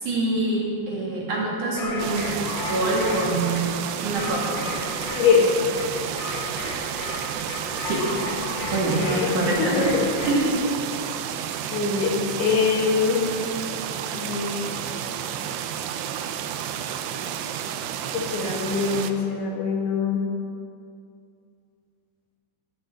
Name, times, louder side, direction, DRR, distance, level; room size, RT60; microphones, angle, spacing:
voice 1, 0.0-3.7 4.0-4.7 7.8-8.1 8.7-9.0 9.3-9.9 10.3-10.5 12.1-12.3, right 2 dB, 50° right, -3 dB, 3.1 m, -25 dB
sound 1, 1.7-10.5, left 2 dB, 60° left, 3.9 m, -34 dB
sound 2, 2.0-19.1, right 9 dB, 80° right, 2.7 m, -31 dB
voice 2, 5.2-5.6 8.9-10.1 11.7-13.4 14.1-14.7 18.1-20.3, left 5 dB, 85° left, -1 dB, 4.4 m, -23 dB
13.5 x 9.9 x 7.6 m, 2.3 s
omnidirectional pair, 5.1 m